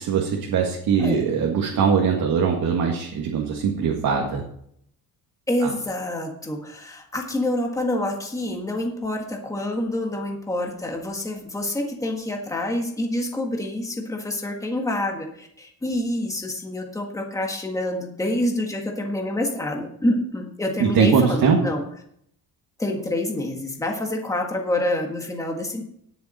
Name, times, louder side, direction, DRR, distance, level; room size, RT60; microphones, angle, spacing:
voice 1, 0.0-4.4 5.6-5.7 20.8-21.6, right 6 dB, 65° right, 0 dB, 2.0 m, -21 dB
voice 2, 5.5-21.8 22.8-25.8, left 1 dB, 10° left, 1 dB, 1.7 m, -27 dB
18.5 x 7.0 x 4.4 m, 0.70 s
cardioid pair, 175°, 37 cm